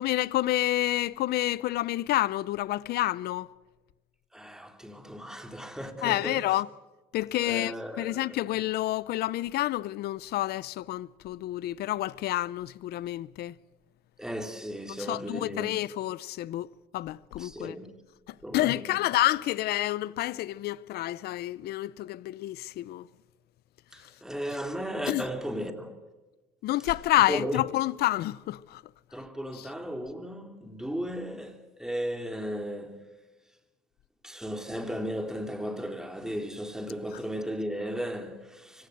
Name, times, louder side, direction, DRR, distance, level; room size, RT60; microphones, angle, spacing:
voice 1, 0.0-3.5 6.0-6.7 7.1-13.5 15.1-16.7 16.9-17.7 18.3-23.1 25.1-25.2 26.6-28.8 29.5-29.7, left 15 dB, 70° left, 0.7 m, -29 dB
voice 2, 4.3-6.6 7.4-8.4 14.2-15.8 17.4-17.9 18.4-19.0 23.9-26.0 27.3-27.6 29.1-33.0 34.2-38.9, equal, 5° right, 2.8 m, -35 dB
25.0 x 16.5 x 7.8 m
cardioid pair, 110°, 17 cm